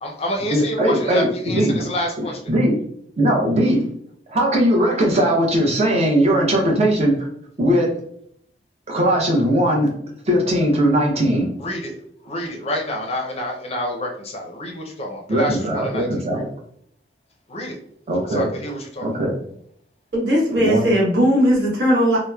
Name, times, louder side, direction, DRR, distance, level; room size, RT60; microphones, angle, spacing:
voice 1, 0.0-2.4 11.6-11.9 12.2-16.4 17.5-17.8 18.3-19.1, left 1 dB, 35° left, 1 dB, 0.5 m, -28 dB
voice 2, 0.5-1.8 2.2-2.8 3.2-3.9 4.3-7.3 7.6-7.9 8.9-9.9 10.3-11.5 15.3-16.4 18.1-18.5 19.0-19.3 20.5-20.9, right 1 dB, 35° right, 0 dB, 0.7 m, -19 dB
voice 3, 20.1-22.2, equal, 70° right, -4 dB, 1.0 m, -18 dB
2.8 x 2.0 x 2.2 m, 0.66 s
head